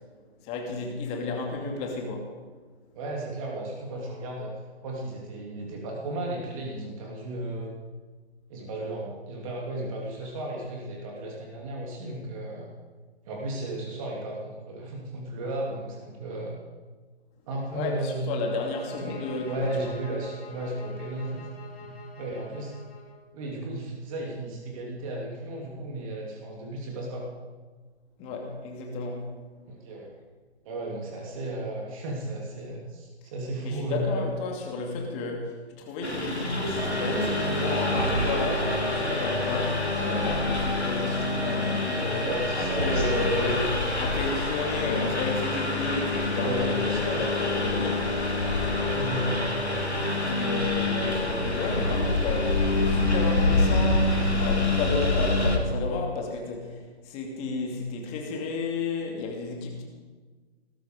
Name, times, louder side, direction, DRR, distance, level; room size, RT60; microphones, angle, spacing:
voice 1, 0.4-2.3 17.7-19.9 28.2-29.3 33.6-42.3 42.6-48.1 50.2-59.8, left 3 dB, 20° left, 1 dB, 2.5 m, -32 dB
voice 2, 2.9-4.5 4.8-7.7 8.5-12.7 13.3-16.6 17.5-18.3 18.8-21.5 21.8-22.7 23.3-27.3 29.7-30.1 30.6-34.1 42.2-43.1 46.4-47.2 48.9-49.5, right 1 dB, 30° right, -1 dB, 2.9 m, -34 dB
sound 1, 18.3-23.2, left 4 dB, 65° left, 5.5 m, -46 dB
Engine, 36.0-55.6, left 2 dB, 85° left, 3.5 m, -26 dB
sound 2, 36.8-43.7, right 1 dB, 85° right, 2.9 m, -33 dB
19.5 x 13.0 x 5.1 m, 1.4 s
figure-of-eight pair, 135°, 33 cm